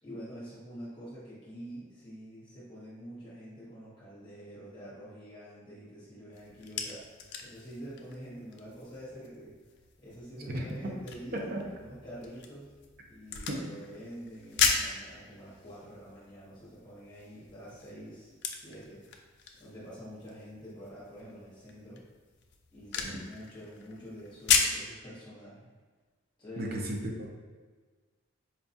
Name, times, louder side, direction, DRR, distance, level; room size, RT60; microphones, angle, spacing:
voice 1, 0.0-7.1 7.4-9.6 10.0-12.7 13.1-19.0 19.6-22.0 22.7-25.7 26.4-26.8, equal, 25° left, -9 dB, 1.0 m, -46 dB
sound 1, 6.3-24.9, left 6 dB, 60° left, 0.4 m, -36 dB
voice 2, 26.6-27.3, right 1 dB, 50° right, 0 dB, 0.6 m, -34 dB
4.4 x 2.3 x 2.6 m, 1.4 s
head